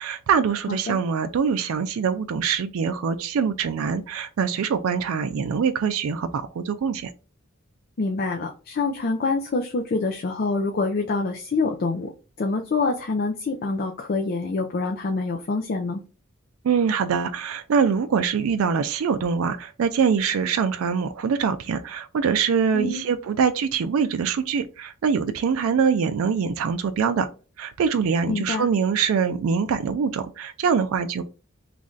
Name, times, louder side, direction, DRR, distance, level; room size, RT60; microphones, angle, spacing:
voice 1, 0.0-7.1 16.6-27.3 27.6-31.2, right 6 dB, 80° right, 0.4 m, -24 dB
voice 2, 0.7-1.0 8.0-12.1 12.4-16.0 22.7-23.0 28.3-28.7, left 3 dB, 45° left, 0.4 m, -26 dB
3.1 x 2.5 x 3.7 m
head